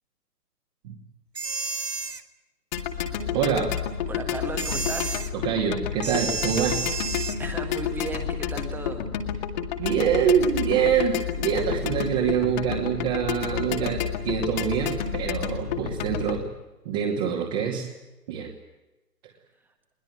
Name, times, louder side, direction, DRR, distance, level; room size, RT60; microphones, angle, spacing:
sound 1, 1.4-2.2 4.6-5.3 6.0-7.4, right 4 dB, 80° right, 2.1 m, -31 dB
sound 2, 2.7-16.4, left 8 dB, 30° left, 2.2 m, -30 dB
voice 1, 3.3-3.8 5.4-6.8 9.8-16.5 16.8-17.9 18.3-18.5, right 8 dB, 25° right, -1 dB, 2.6 m, -25 dB
voice 2, 4.1-5.2 7.4-9.1, right 3 dB, 5° right, 5 dB, 1.8 m, -35 dB
22.0 x 19.5 x 9.0 m, 1.0 s
figure-of-eight pair, 140°, 47 cm